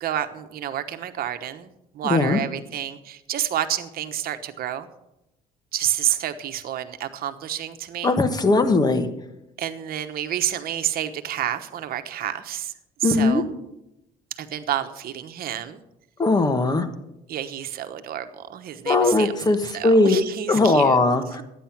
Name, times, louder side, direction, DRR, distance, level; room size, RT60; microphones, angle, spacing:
voice 1, 0.0-4.9 5.7-8.1 9.6-12.7 13.0-13.5 14.4-15.8 17.3-21.0, right 11 dB, 60° right, 9 dB, 1.1 m, -29 dB
voice 2, 2.0-2.4 8.0-9.1 13.0-13.4 16.2-16.9 18.9-19.6 19.8-20.2 20.5-21.4, left 3 dB, 25° left, 9 dB, 1.3 m, -19 dB
12.0 x 9.5 x 5.9 m, 0.88 s
cardioid pair, 110°, 17 cm